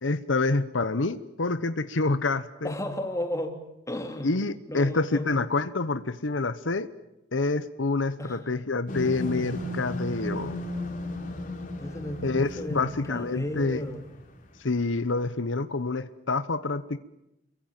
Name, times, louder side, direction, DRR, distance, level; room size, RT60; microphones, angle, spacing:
voice 1, 0.0-2.7 4.2-6.9 7.3-10.6 12.2-13.8 14.6-17.0, left 3 dB, 85° left, 13 dB, 1.1 m, -27 dB
voice 2, 2.6-3.6 3.9-4.3 4.7-5.3 8.2-8.5 11.8-14.0, left 1 dB, 15° left, 5 dB, 3.1 m, -34 dB
sound 1, 8.9-14.2, left 1 dB, 45° left, 3.8 m, -35 dB
29.5 x 23.0 x 7.4 m, 0.88 s
head